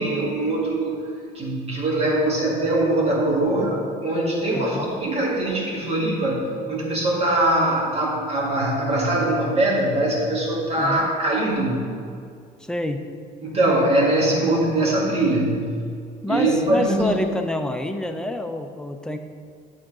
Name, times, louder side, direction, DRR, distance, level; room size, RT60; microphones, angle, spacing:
voice 1, 0.0-11.8 13.4-15.8 16.3-17.2, right 1 dB, 35° right, -3 dB, 1.9 m, -22 dB
voice 2, 4.5-4.9 10.8-11.1 12.6-13.1 16.2-19.2, left 2 dB, 5° left, 5 dB, 0.5 m, -27 dB
8.7 x 3.8 x 4.8 m, 2.2 s
cardioid pair, 110°, 17 cm